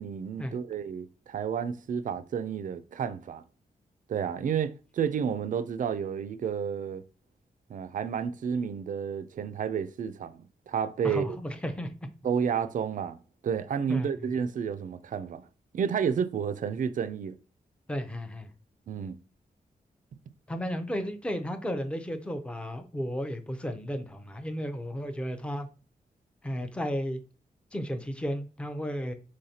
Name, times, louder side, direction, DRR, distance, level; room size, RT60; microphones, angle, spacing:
voice 1, 0.0-3.4 4.1-7.0 7.7-11.4 12.2-13.2 13.4-15.4 15.7-17.3 18.9-19.2, right 7 dB, 60° right, 0.4 m, -31 dB
voice 2, 11.0-11.9 13.9-14.3 17.9-18.5 20.5-25.7 26.4-27.2 27.7-29.1, equal, 5° left, 0.5 m, -33 dB
5.6 x 3.1 x 2.7 m
wide cardioid pair, 140°, 15 cm